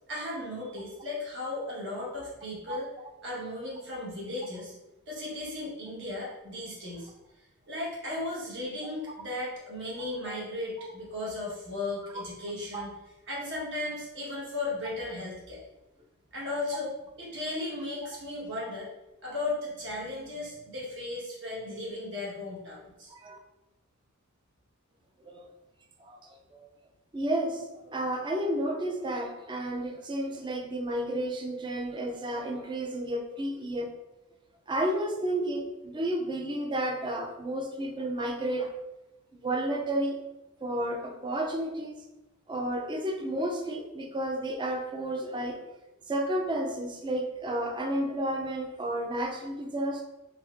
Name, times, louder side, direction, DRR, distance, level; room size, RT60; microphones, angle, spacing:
voice 1, 0.1-2.9 3.2-4.7 5.1-7.1 7.7-12.9 13.3-15.6 16.3-18.9 19.2-23.1, left 2 dB, 60° right, -6 dB, 1.3 m, -36 dB
voice 2, 27.1-33.9 34.7-38.7 39.3-40.2 40.6-42.0 42.5-45.6 46.1-50.0, right 1 dB, 20° right, 3 dB, 0.4 m, -31 dB
3.9 x 2.8 x 2.5 m, 0.98 s
head